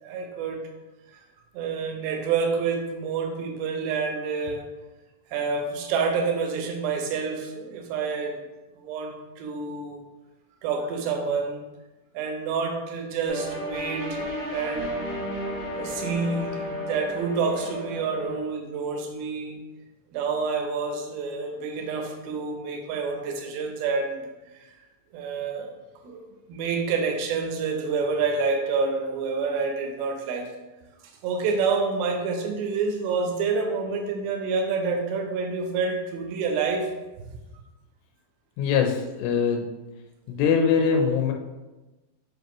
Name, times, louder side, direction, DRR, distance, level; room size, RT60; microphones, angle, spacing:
voice 1, 0.0-0.7 1.5-4.7 5.3-8.4 8.8-10.0 10.6-11.6 12.1-15.0 15.8-19.6 20.1-24.7 25.1-25.7 26.0-30.5 31.2-36.9 37.2-37.3, right 5 dB, 75° right, 3 dB, 2.5 m, -28 dB
sound 1, 13.3-18.4, equal, 35° left, 2.0 m, -33 dB
voice 2, 38.6-39.7 40.3-41.3, left 6 dB, 90° left, 3 dB, 2.8 m, -22 dB
7.2 x 5.3 x 3.0 m, 1.1 s
omnidirectional pair, 4.8 m